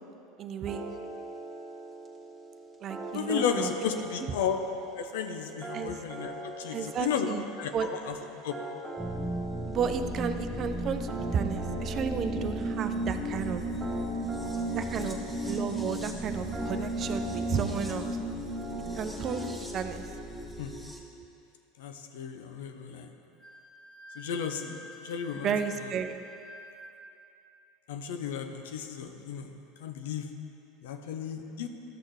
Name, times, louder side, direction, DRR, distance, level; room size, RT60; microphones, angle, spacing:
voice 1, 0.4-0.8 2.8-3.7 5.7-6.0 6.7-7.4 7.7-7.9 9.7-13.6 14.7-18.2 18.9-20.0 25.3-26.2, right 7 dB, 40° right, 8 dB, 0.5 m, -33 dB
sound 1, 0.6-19.6, right 2 dB, 20° right, 1.6 m, -43 dB
voice 2, 3.1-4.6 5.0-7.3 7.6-8.1 8.4-8.6 20.6-20.7 21.8-23.1 24.2-25.5 27.9-29.5 29.8-30.3 30.8-31.7, left 7 dB, 75° left, 6 dB, 0.6 m, -33 dB
sound 2, 9.0-21.0, right 1 dB, ahead, 1.1 m, -34 dB
Wind instrument woodwind instrument, 23.4-27.1, left 1 dB, 35° left, 1.0 m, -48 dB
13.0 x 6.4 x 3.1 m, 2.7 s
hypercardioid pair, 90°, 0 cm